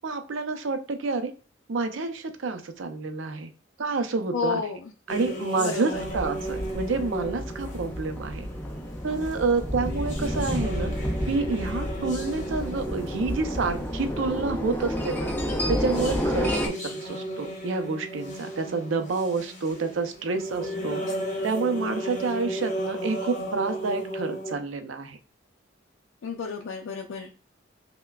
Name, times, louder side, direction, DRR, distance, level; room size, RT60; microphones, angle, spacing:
voice 1, 0.0-1.3 1.7-3.5 3.8-4.6 5.1-8.5 9.0-10.9 11.3-15.3 15.7-21.0 21.4-25.2, right 4 dB, 80° right, 7 dB, 0.5 m, -28 dB
voice 2, 4.3-4.8 5.6-6.0 26.2-27.3, left 5 dB, 90° left, 1 dB, 0.4 m, -31 dB
sound 1, 5.1-24.5, equal, 40° left, 1.0 m, -35 dB
sound 2, 5.9-16.7, equal, 10° left, 0.4 m, -30 dB
5.5 x 2.1 x 2.2 m, 0.37 s
head